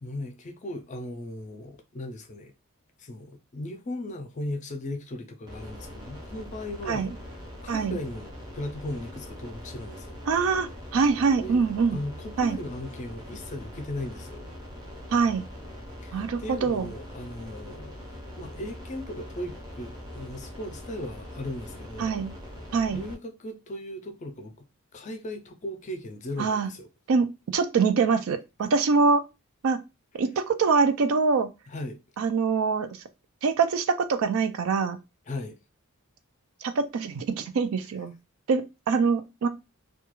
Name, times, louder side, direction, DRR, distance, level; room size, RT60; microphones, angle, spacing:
voice 1, 0.0-2.5 3.0-10.2 11.4-14.5 16.0-22.2 22.9-24.5 24.9-26.9 31.7-32.0 35.3-35.6, left 1 dB, 35° left, 0.4 m, -37 dB
sound 1, 5.5-23.1, left 1 dB, 20° right, 0.6 m, -42 dB
voice 2, 7.7-8.0 10.3-12.0 12.4-12.6 15.1-15.4 16.1-16.9 22.0-22.3 22.7-23.0 26.4-26.7 27.1-29.2 29.6-29.8 30.2-31.5 32.2-32.9 33.4-35.0 36.6-38.1 38.5-39.5, right 5 dB, 70° right, 0.4 m, -24 dB
2.3 x 2.2 x 2.9 m
head